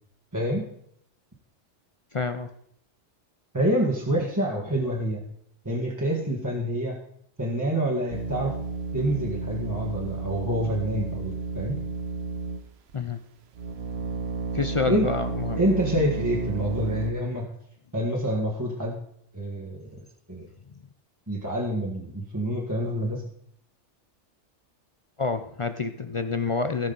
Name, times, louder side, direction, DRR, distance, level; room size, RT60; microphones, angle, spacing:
voice 1, 0.3-0.6 3.5-5.2 5.6-7.0 7.4-8.5 8.9-11.8 14.9-15.1 15.6-17.5 17.9-19.0 19.3-19.8 20.3-20.5 21.3-23.2, equal, 15° right, -3 dB, 1.7 m, -27 dB
voice 2, 2.1-2.5 12.9-13.2 14.5-15.6 25.2-26.9, left 4 dB, 45° left, 9 dB, 0.4 m, -28 dB
sound 1, 8.1-12.9 13.6-17.1, right 4 dB, 65° right, 1.0 m, -32 dB
17.5 x 6.2 x 4.0 m, 0.68 s
omnidirectional pair, 1.2 m